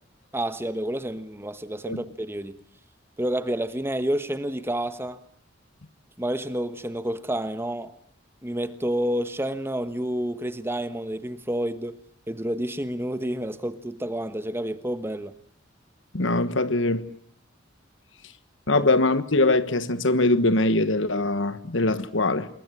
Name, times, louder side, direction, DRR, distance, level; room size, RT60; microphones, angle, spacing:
voice 1, 0.3-2.6 3.2-5.2 6.2-7.9 8.4-12.0 12.3-15.3 18.8-18.9, right 1 dB, 10° right, 1.2 m, -29 dB
voice 2, 16.1-17.0 18.7-22.5, left 2 dB, 70° left, 1.4 m, -22 dB
27.0 x 22.0 x 9.7 m
head